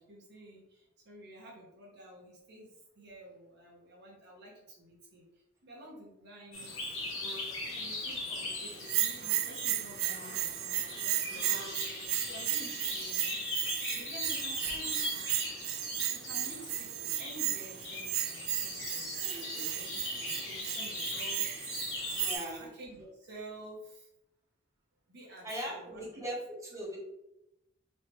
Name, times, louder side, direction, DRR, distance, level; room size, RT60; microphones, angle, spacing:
voice 1, 0.0-5.2 5.6-7.0 7.6-15.3 15.9-19.1 19.5-21.9 22.6-24.1 25.1-26.0, right 1 dB, 60° right, -3 dB, 0.9 m, -51 dB
sound 1, 6.5-22.4, left 2 dB, 85° left, 1.1 m, -40 dB
Bell, 8.8-22.6, right 12 dB, 90° right, 0.3 m, -35 dB
voice 2, 19.1-19.7 22.2-22.7 25.4-27.0, equal, 15° right, -5 dB, 1.1 m, -40 dB
3.2 x 3.1 x 3.0 m, 0.88 s
head